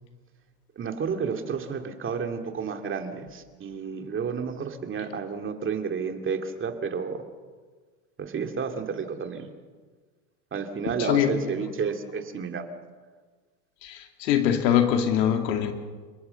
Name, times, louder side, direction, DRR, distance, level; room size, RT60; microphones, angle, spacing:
voice 1, 0.8-7.2 8.2-9.5 10.5-12.6, right 6 dB, 25° right, 5 dB, 2.5 m, -31 dB
voice 2, 13.8-15.7, left 9 dB, 85° left, 5 dB, 2.6 m, -23 dB
29.5 x 18.5 x 7.0 m, 1.4 s
supercardioid pair, 125°, 49 cm